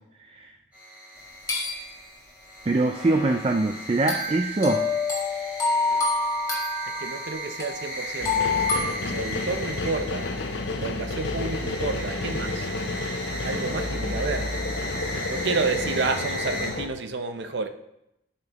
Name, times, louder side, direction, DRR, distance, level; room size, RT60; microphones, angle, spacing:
sound 1, 0.7-16.7, equal, 5° right, 3.4 m, -37 dB
sound 2, 1.5-2.1 4.1-8.8, left 3 dB, 20° left, 1.6 m, -27 dB
voice 1, 2.7-4.9 15.1-15.2, right 2 dB, 30° right, 0.3 m, -23 dB
voice 2, 6.9-8.6 9.0-10.3 10.8-12.7 13.4-14.6 15.3-17.7, right 3 dB, 70° right, 0.6 m, -30 dB
sound 3, 8.2-16.9, left 2 dB, 75° left, 0.6 m, -31 dB
12.5 x 5.8 x 3.0 m
head